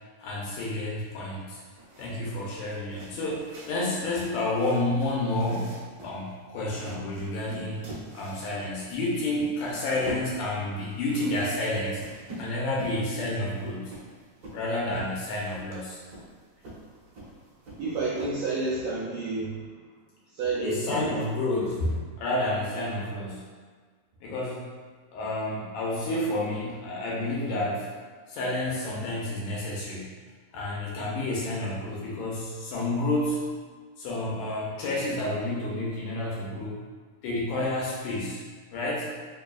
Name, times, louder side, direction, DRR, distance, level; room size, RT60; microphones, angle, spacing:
voice 1, 0.2-1.6 2.0-7.8 8.1-12.0 12.4-13.9 14.5-16.0 20.6-23.5 24.2-24.7 25.1-27.9 28.3-30.2 30.5-33.5 34.0-36.8 37.2-38.4 38.7-39.1, left 1 dB, 80° left, -4 dB, 1.8 m, -30 dB
sound 1, 1.7-18.7, right 1 dB, 65° right, 1.8 m, -45 dB
voice 2, 17.8-19.6 20.4-21.1, right 3 dB, 85° right, -7 dB, 1.5 m, -29 dB
4.8 x 2.6 x 2.3 m, 1.5 s
omnidirectional pair, 3.6 m